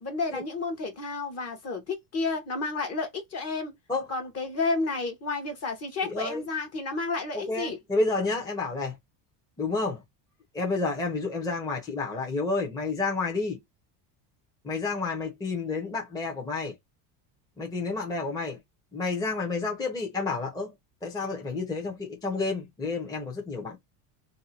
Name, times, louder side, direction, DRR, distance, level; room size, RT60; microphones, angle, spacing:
voice 1, 0.0-3.7 4.1-7.8, left 3 dB, 30° left, 1.0 m, -31 dB
voice 2, 6.0-6.4 7.3-9.0 9.6-10.0 10.5-13.6 14.6-16.7 17.6-18.6 18.9-20.7 21.0-23.8, left 3 dB, 10° left, 0.7 m, -30 dB
2.7 x 2.2 x 4.0 m
cardioid pair, 130°, 48 cm